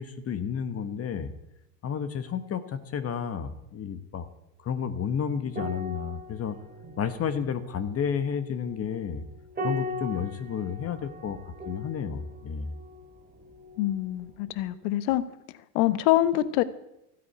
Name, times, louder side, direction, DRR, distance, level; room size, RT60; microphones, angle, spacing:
voice 1, 0.0-1.3 1.8-4.3 4.6-6.6 7.0-9.2 9.6-11.4 11.6-12.7, left 7 dB, 30° left, 11 dB, 1.3 m, -31 dB
sound 1, 5.5-14.2 14.5-14.7, left 1 dB, 20° right, 2.4 m, -40 dB
voice 2, 13.8-15.2 15.7-16.6, left 14 dB, 60° left, 16 dB, 1.1 m, -25 dB
14.0 x 9.5 x 8.0 m, 0.86 s
hypercardioid pair, 100°, 49 cm